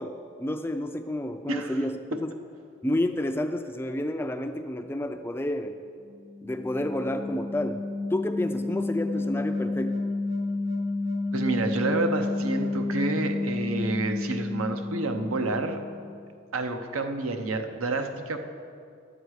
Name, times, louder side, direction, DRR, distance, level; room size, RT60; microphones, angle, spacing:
voice 1, 0.0-2.3 2.8-5.8 6.4-7.8 8.1-10.0, left 1 dB, 10° left, 7 dB, 0.3 m, -30 dB
sound 1, 6.1-16.2, left 2 dB, 60° right, 1.3 m, -31 dB
voice 2, 11.3-15.8 16.5-18.4, right 3 dB, 90° right, 6 dB, 0.8 m, -29 dB
11.0 x 7.9 x 4.7 m, 2.4 s
head